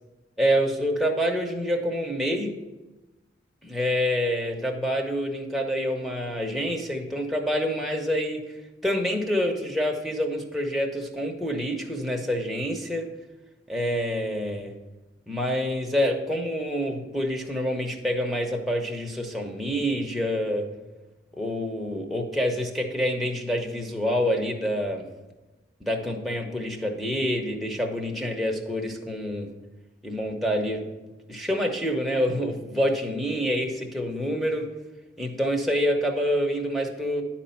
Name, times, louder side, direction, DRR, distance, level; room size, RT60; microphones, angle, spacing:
voice 1, 0.4-2.6 3.6-8.4 8.8-13.1 13.7-14.7 15.3-20.7 21.4-25.1 25.8-29.5 30.0-30.9 31.3-34.7 35.2-37.2, equal, ahead, -1 dB, 0.9 m, -27 dB
11.0 x 4.3 x 5.7 m, 1.1 s
head